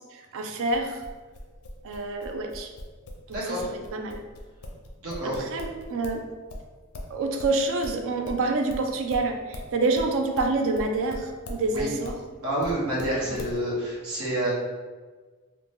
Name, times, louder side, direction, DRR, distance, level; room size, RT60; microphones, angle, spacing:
voice 1, 0.1-1.0 1.8-2.7 3.3-3.6 3.9-4.2 5.4-6.2 7.1-12.2 13.2-13.4, right 3 dB, 65° right, 4 dB, 0.4 m, -27 dB
sound 1, 0.7-6.2 6.5-12.2 12.6-13.6, left 1 dB, 75° left, 0.5 m, -39 dB
voice 2, 3.3-3.7 5.0-5.4 11.7-11.9 12.4-14.5, right 1 dB, 80° right, -6 dB, 1.0 m, -28 dB
2.9 x 2.1 x 3.3 m, 1.4 s
head